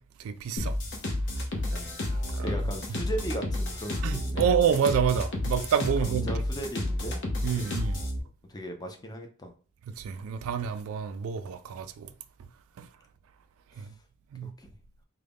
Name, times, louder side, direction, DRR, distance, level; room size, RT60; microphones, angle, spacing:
voice 1, 0.2-0.8 2.3-2.5 4.0-6.3 7.4-8.0 10.0-12.1 12.8-12.9 13.8-13.9 14.3-14.5, right 8 dB, 65° right, 0.3 m, -28 dB
sound 1, 0.6-8.2, left 1 dB, 55° left, 0.8 m, -31 dB
voice 2, 1.7-2.0 2.4-4.5 6.0-7.2 7.5-7.8 8.5-9.5 13.8-13.9 14.4-14.8, right 1 dB, 20° left, 0.5 m, -38 dB
3.7 x 2.2 x 3.4 m
head